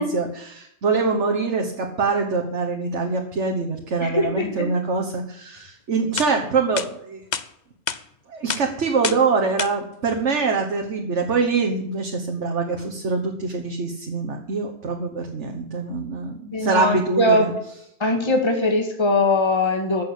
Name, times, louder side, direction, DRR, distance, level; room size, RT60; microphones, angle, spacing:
voice 1, 0.0-7.2 8.3-17.5, right 4 dB, 70° right, 3 dB, 1.7 m, -24 dB
voice 2, 4.0-4.7 16.5-17.4 18.0-20.0, left 2 dB, 20° left, 3 dB, 2.0 m, -21 dB
sound 1, 5.7-5.8 6.2-6.3 6.8-6.9 7.3-7.5 7.9-8.0 8.5-8.6 9.0-9.2 9.6-9.7, left 6 dB, 40° left, 0.8 m, -27 dB
15.0 x 7.0 x 8.3 m, 0.75 s
omnidirectional pair, 1.3 m